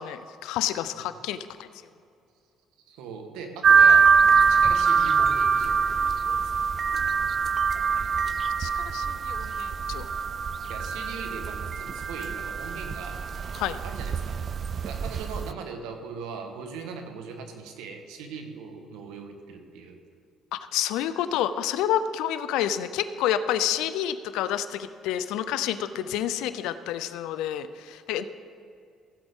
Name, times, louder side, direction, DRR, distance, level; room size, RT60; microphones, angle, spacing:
voice 1, 0.0-1.7 8.6-10.1 13.6-13.8 20.5-28.2, left 10 dB, 85° left, 13 dB, 0.5 m, -29 dB
voice 2, 2.9-6.6 7.7-8.1 10.7-13.3 13.8-14.4 14.8-20.0 26.0-26.1, right 5 dB, 90° right, 5 dB, 1.3 m, -40 dB
sound 1, 3.6-15.5, right 6 dB, 45° right, 0.3 m, -23 dB
15.5 x 7.9 x 3.6 m, 2.5 s
cardioid pair, 90°, 0 cm